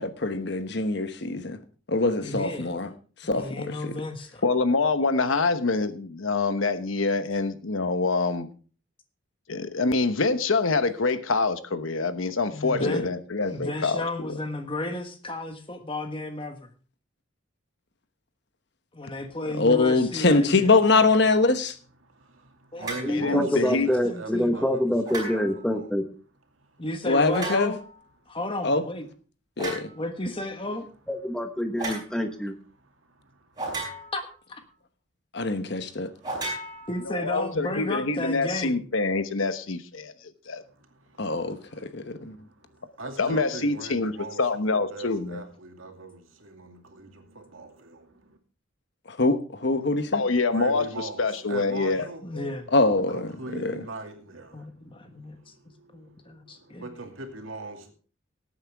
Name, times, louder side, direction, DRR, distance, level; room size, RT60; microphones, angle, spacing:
voice 1, 0.0-1.6 1.9-2.9 3.2-3.9 12.8-13.0 19.6-21.7 27.1-27.7 28.6-28.8 29.6-29.9 35.3-36.1 41.2-41.6 41.8-42.4 49.1-50.2 52.7-53.8, left 3 dB, 55° left, 1.0 m, -23 dB
voice 2, 2.2-2.7 3.2-4.4 12.5-13.0 13.5-16.7 18.9-20.7 22.7-24.7 26.8-27.8 28.3-29.1 29.9-30.9 34.1-34.6 36.9-38.9 52.2-52.7 54.5-55.4 55.9-57.0, left 1 dB, 25° left, 1.4 m, -34 dB
voice 3, 4.4-8.5 9.5-14.0 23.1-23.9 37.1-40.1 40.5-40.6 43.2-44.1 44.4-45.4 50.1-52.1 52.4-52.5, left 3 dB, 80° left, 1.0 m, -25 dB
voice 4, 22.0-25.9 26.6-26.8 32.7-34.1 35.5-36.9 40.6-48.4 49.7-52.3 53.1-57.9, right 3 dB, 80° right, 2.4 m, -42 dB
sound 1, 22.8-23.1 25.0-25.7 27.3-27.9 29.6-29.9 31.8-32.1 33.6-34.3 36.2-37.4, right 2 dB, 20° right, 4.7 m, -34 dB
voice 5, 23.0-26.1 31.1-32.6, equal, 5° left, 1.2 m, -26 dB
18.5 x 8.7 x 3.5 m
head